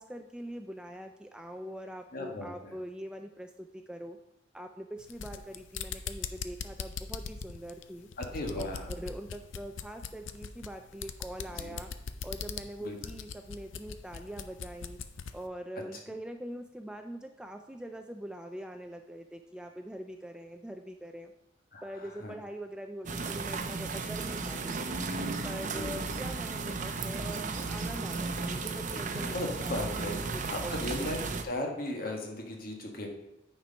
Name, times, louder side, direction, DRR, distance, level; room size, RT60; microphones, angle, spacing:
voice 1, 0.0-4.2 4.5-8.1 8.6-11.9 12.2-15.0 15.3-21.3 21.8-25.0 25.4-31.1, right 1 dB, 5° right, 5 dB, 0.3 m, -43 dB
voice 2, 2.1-2.7 8.2-8.9 11.5-11.8 12.8-13.0 21.7-22.3 25.7-26.2 29.1-30.1 30.5-31.2 31.4-33.1, left 1 dB, 50° left, 1 dB, 1.6 m, -37 dB
sound 1, 5.0-15.4, left 6 dB, 80° left, 0.5 m, -41 dB
sound 2, 23.1-31.4, right 4 dB, 40° right, 0.7 m, -34 dB
9.2 x 4.4 x 5.2 m, 0.89 s
head